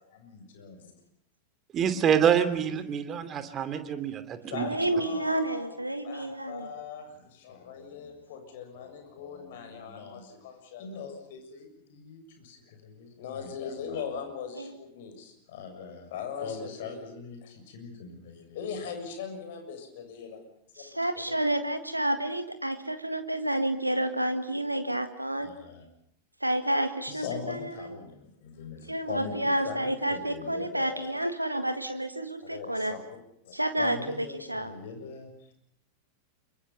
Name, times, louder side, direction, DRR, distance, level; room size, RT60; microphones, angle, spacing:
voice 1, 0.1-0.8 4.5-5.8 6.0-20.4 20.8-21.0 21.3-21.4 25.4-25.8 27.1-31.3 32.4-33.0 33.4-35.5, left 6 dB, 55° left, 6 dB, 7.0 m, -40 dB
voice 2, 1.7-4.7, right 8 dB, 30° right, 10 dB, 2.8 m, -26 dB
voice 3, 4.6-6.7 14.6-14.7 20.8-25.5 26.4-28.0 28.9-33.0 33.5-34.7, right 1 dB, 85° right, 9 dB, 1.7 m, -30 dB
28.5 x 24.0 x 5.8 m, 0.75 s
figure-of-eight pair, 90°, 0 cm